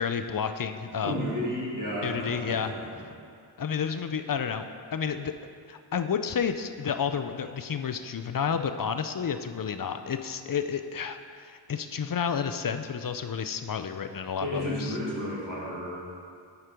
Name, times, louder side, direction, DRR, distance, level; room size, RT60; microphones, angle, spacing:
voice 1, 0.0-1.2 2.0-2.7 3.6-5.3 5.7-15.0, left 7 dB, 45° left, 8 dB, 0.5 m, -31 dB
voice 2, 1.0-2.9 14.4-16.0, equal, 40° right, -7 dB, 2.1 m, -32 dB
7.9 x 6.0 x 5.1 m, 2.3 s
wide cardioid pair, 60°, 47 cm